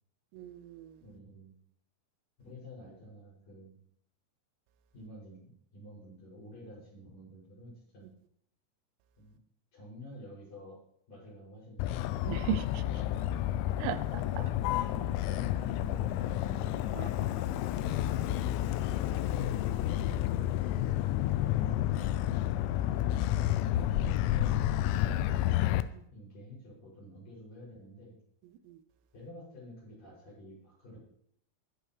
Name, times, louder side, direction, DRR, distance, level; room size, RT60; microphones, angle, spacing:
voice 1, 0.3-1.0 12.3-12.7 13.8-14.2 17.0-17.4 25.9-26.0 28.6-28.8, right 11 dB, 85° right, 11 dB, 3.4 m, -37 dB
voice 2, 1.0-1.5 2.4-3.8 4.9-8.1 9.2-9.4 9.7-10.8 11.1-12.1 14.2-16.9 21.3-22.0 26.1-28.2 29.1-31.0, left 1 dB, 40° left, -5 dB, 8.2 m, -50 dB
Motor vehicle (road), 11.8-25.8, left 13 dB, 85° left, 3.3 m, -30 dB
22.0 x 8.4 x 3.3 m, 0.70 s
omnidirectional pair, 6.0 m